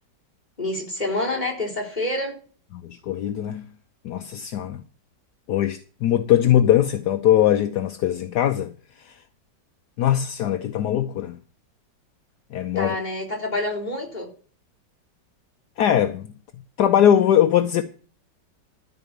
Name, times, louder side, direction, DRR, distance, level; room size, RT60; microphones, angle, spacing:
voice 1, 0.6-2.4 12.7-14.3, left 2 dB, 25° left, 4.0 m, -27 dB
voice 2, 2.8-3.6 4.0-4.8 5.5-8.7 9.0-9.1 10.0-11.4 12.5-13.0 15.8-16.3 16.8-17.8, left 10 dB, 70° left, 1.3 m, -20 dB
13.5 x 5.0 x 8.9 m
omnidirectional pair, 1.9 m